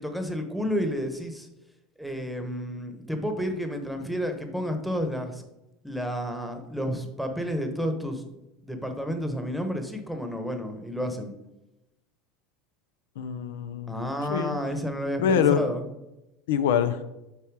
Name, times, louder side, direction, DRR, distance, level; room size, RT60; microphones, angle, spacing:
voice 1, 0.0-1.5 2.0-5.4 5.8-8.2 8.6-11.3 13.9-15.8, equal, ahead, 5 dB, 1.0 m, -31 dB
voice 2, 13.2-14.6 15.2-15.6 16.5-17.0, left 8 dB, 90° left, 11 dB, 0.5 m, -25 dB
6.9 x 4.5 x 4.7 m, 0.93 s
supercardioid pair, 120°, 0 cm